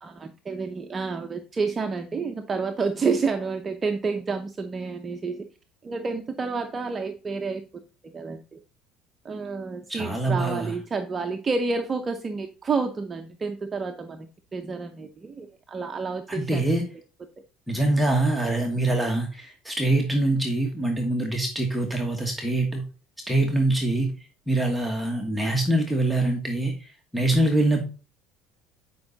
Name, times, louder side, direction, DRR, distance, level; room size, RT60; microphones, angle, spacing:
voice 1, 0.0-5.5 5.8-7.6 8.0-8.6 9.2-16.7, right 4 dB, 25° right, 5 dB, 0.7 m, -29 dB
voice 2, 9.9-10.7 16.3-16.8 17.7-22.8 23.3-24.1 24.5-27.8, right 2 dB, 5° right, 1 dB, 1.3 m, -24 dB
9.4 x 5.4 x 4.0 m, 0.35 s
cardioid pair, 130°, 0 cm